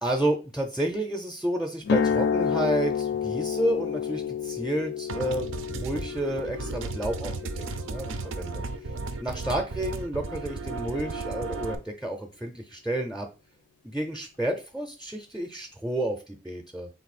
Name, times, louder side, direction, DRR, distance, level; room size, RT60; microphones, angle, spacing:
voice 1, 0.0-8.9 9.2-13.3 13.8-16.9, right 1 dB, 5° right, 4 dB, 0.5 m, -31 dB
sound 1, 1.8-9.9, left 7 dB, 60° left, 0.4 m, -30 dB
sound 2, 5.1-11.7, right 3 dB, 90° right, 0.5 m, -35 dB
3.8 x 2.7 x 4.1 m, 0.31 s
head